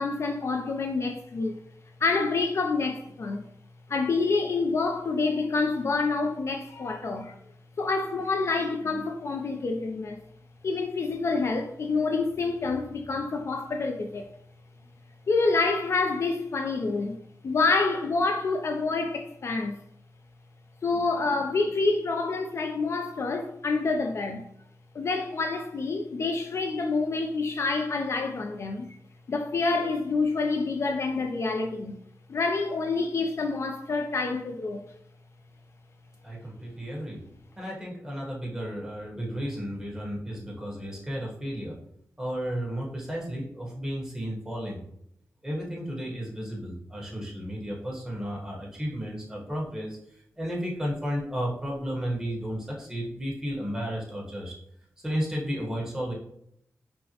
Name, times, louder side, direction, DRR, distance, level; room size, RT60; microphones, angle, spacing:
voice 1, 0.0-1.6 2.0-3.4 3.9-7.4 7.8-10.2 10.6-14.2 15.3-17.2 17.4-19.7 20.8-24.5 24.9-29.0 29.3-32.0 32.3-34.8, left 3 dB, 50° left, 0.3 m, -27 dB
voice 2, 36.2-37.2 37.6-41.8 42.2-44.8 45.4-50.0 50.4-54.6 55.0-56.1, equal, 10° right, 1.1 m, -33 dB
5.4 x 2.1 x 2.8 m
wide cardioid pair, 150°, 6 cm